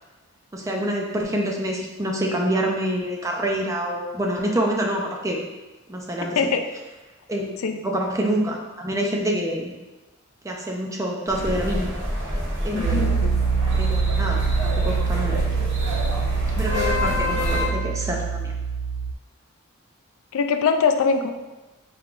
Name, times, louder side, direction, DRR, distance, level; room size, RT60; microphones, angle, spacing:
voice 1, 0.5-5.4 5.9-6.4 7.3-7.6 7.8-9.7 10.4-11.9 12.6-13.3 13.8-15.4 16.6-18.5, right 1 dB, 15° right, 0 dB, 0.4 m, -26 dB
sound 1, 11.3-17.7, left 1 dB, 50° right, 1.0 m, -26 dB
voice 2, 12.7-13.3 20.3-21.3, left 5 dB, 70° left, 6 dB, 0.3 m, -22 dB
Piano, 12.8-19.1, right 6 dB, 90° right, 0.3 m, -25 dB
4.4 x 3.6 x 2.5 m, 1.1 s
head